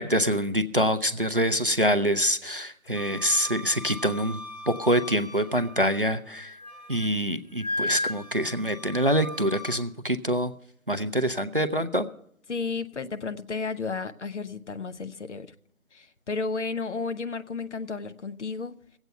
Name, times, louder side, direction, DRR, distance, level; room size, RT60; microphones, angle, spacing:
voice 1, 0.0-4.4 4.7-6.5 6.9-10.5 10.9-12.1, equal, 45° right, 0.4 m, -25 dB
Wind instrument woodwind instrument, 2.9-6.0 6.4-7.1 7.6-9.8, left 1 dB, 30° left, 1.0 m, -36 dB
voice 2, 12.5-15.5 15.9-18.7, left 4 dB, 55° left, 0.8 m, -33 dB
15.5 x 8.0 x 6.5 m
figure-of-eight pair, 170°, 41 cm